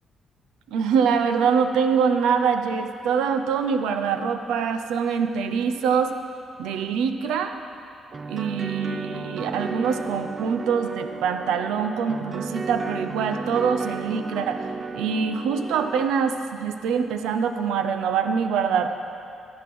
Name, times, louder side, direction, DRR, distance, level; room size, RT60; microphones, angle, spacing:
voice 1, 0.7-6.2 6.6-7.5 8.3-14.6 14.9-18.9, right 6 dB, 90° right, 7 dB, 0.7 m, -24 dB
sound 1, 8.1-16.1, right 4 dB, 35° right, 0.6 m, -33 dB
12.5 x 9.0 x 6.1 m, 2.7 s
cardioid pair, 90°, 0 cm